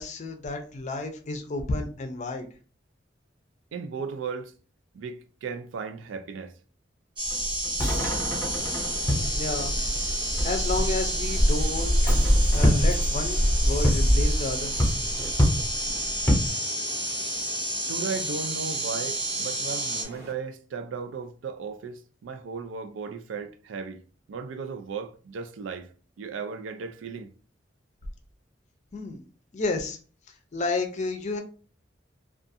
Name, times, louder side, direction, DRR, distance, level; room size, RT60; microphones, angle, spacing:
voice 1, 0.0-2.5 9.3-9.7 10.4-12.2 12.5-14.8 28.9-29.2 29.5-30.0 30.5-31.4, left 2 dB, 40° left, 0.5 m, -31 dB
voice 2, 3.7-4.5 4.9-6.5 17.9-24.0 24.3-25.9 26.2-27.3, right 5 dB, 90° right, 0.4 m, -36 dB
sound 1, 7.2-16.5, equal, 15° left, 0.8 m, -24 dB
sound 2, 7.2-20.0, right 1 dB, 25° right, 0.6 m, -31 dB
sound 3, 8.3-20.3, right 1 dB, 60° right, 0.8 m, -45 dB
2.4 x 2.4 x 2.6 m
head